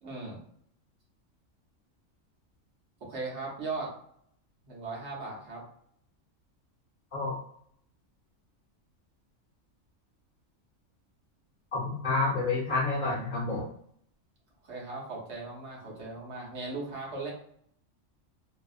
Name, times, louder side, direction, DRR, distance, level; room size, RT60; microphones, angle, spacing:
voice 1, 0.0-0.4 3.1-3.9 4.6-5.6 14.6-17.3, right 3 dB, 60° right, -3 dB, 1.1 m, -38 dB
voice 2, 11.7-13.7, left 3 dB, 55° left, -4 dB, 0.6 m, -29 dB
2.7 x 2.3 x 2.3 m, 0.67 s
omnidirectional pair, 1.3 m